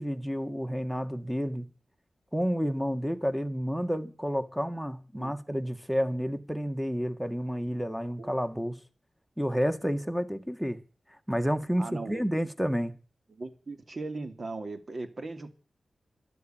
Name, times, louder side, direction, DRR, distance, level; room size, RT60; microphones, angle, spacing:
voice 1, 0.0-1.7 2.3-8.8 9.4-10.8 11.3-12.9, equal, ahead, 1.9 m, -30 dB
voice 2, 11.8-12.2 13.3-15.5, right 3 dB, 50° right, 2.8 m, -38 dB
13.0 x 10.5 x 9.2 m
wide cardioid pair, 75°, 0 cm